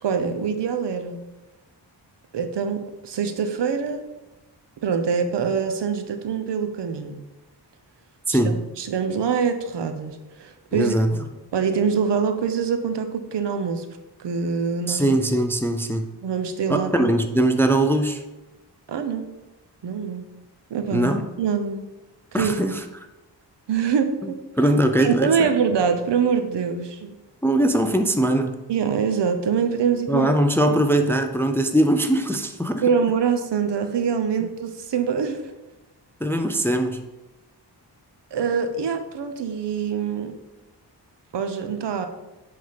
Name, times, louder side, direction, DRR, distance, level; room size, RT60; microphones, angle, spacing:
voice 1, 0.0-1.2 2.3-4.1 4.8-7.2 8.3-10.9 11.5-13.9 14.2-15.2 16.2-17.1 18.9-19.3 19.8-20.3 20.7-21.1 21.4-21.8 22.3-22.8 23.7-24.4 25.0-27.2 28.7-30.3 30.6-30.8 32.8-35.5 38.3-40.3 41.3-42.1, right 6 dB, 75° right, 7 dB, 0.8 m, -24 dB
voice 2, 8.3-8.6 10.7-11.2 14.9-16.1 16.7-18.2 20.9-21.2 22.3-22.8 24.6-25.5 27.4-28.6 30.1-32.8 36.2-37.0, right 1 dB, 5° left, 6 dB, 0.3 m, -21 dB
7.9 x 3.7 x 5.1 m, 1.0 s
wide cardioid pair, 140°, 42 cm